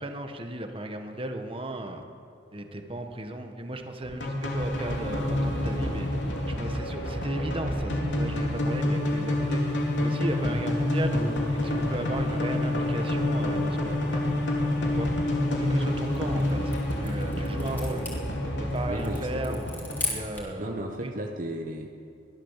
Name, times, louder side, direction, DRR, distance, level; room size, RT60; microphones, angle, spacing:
voice 1, 0.0-2.0 2.5-6.1 6.5-14.2 14.9-15.1 15.6-16.7 17.0-18.1 18.6-19.6 20.1-20.7 21.0-21.1, right 1 dB, 30° right, 5 dB, 1.5 m, -35 dB
sound 1, 4.0-20.2, left 1 dB, 65° left, 3.4 m, -28 dB
sound 2, 16.1-20.6, left 1 dB, 10° left, 3.7 m, -38 dB
voice 2, 18.9-19.6 20.6-21.9, right 1 dB, 45° right, 2 dB, 1.2 m, -34 dB
22.5 x 15.5 x 7.5 m, 2.6 s
head